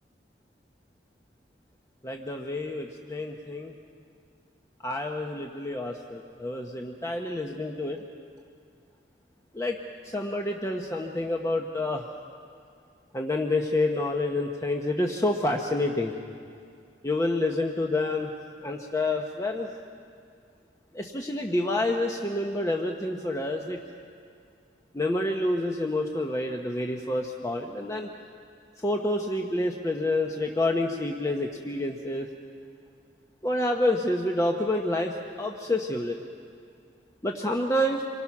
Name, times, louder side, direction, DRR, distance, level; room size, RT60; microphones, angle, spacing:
voice 1, 2.0-3.7 4.8-8.0 9.5-9.8 10.0-12.0 13.1-16.2 17.0-18.3 18.6-19.7 20.9-23.8 24.9-28.1 28.8-32.3 33.4-36.2 37.2-38.0, left 1 dB, 20° left, 1 dB, 1.0 m, -28 dB
27.0 x 23.0 x 6.0 m, 2.3 s
head